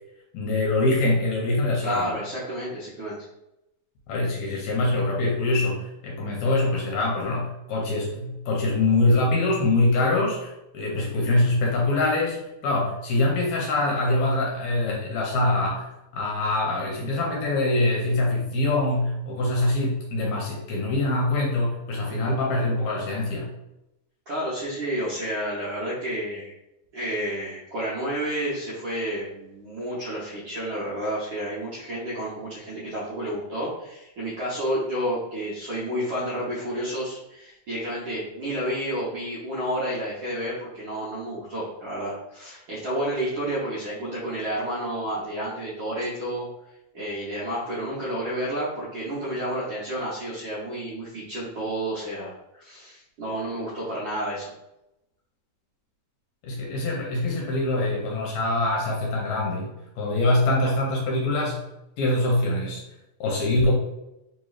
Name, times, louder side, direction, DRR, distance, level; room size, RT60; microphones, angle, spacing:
voice 1, 0.3-2.2 4.1-15.9 16.1-23.5 56.4-61.6 62.0-62.8 63.2-63.7, left 2 dB, 75° left, -2 dB, 1.9 m, -24 dB
voice 2, 1.8-3.3 24.3-26.5 26.9-46.5 46.9-54.5, right 1 dB, 70° right, -9 dB, 1.2 m, -30 dB
4.5 x 3.0 x 2.4 m, 0.88 s
omnidirectional pair, 3.5 m